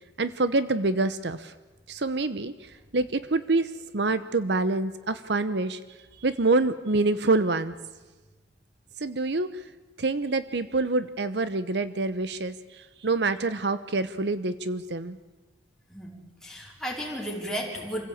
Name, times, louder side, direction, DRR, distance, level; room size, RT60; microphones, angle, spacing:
voice 1, 0.2-1.5 1.9-5.8 6.2-7.7 9.0-9.7 10.0-15.2, right 3 dB, 65° right, 13 dB, 0.9 m, -26 dB
voice 2, 15.9-18.0, equal, 5° left, -2 dB, 4.5 m, -34 dB
27.0 x 16.0 x 8.6 m, 1.2 s
head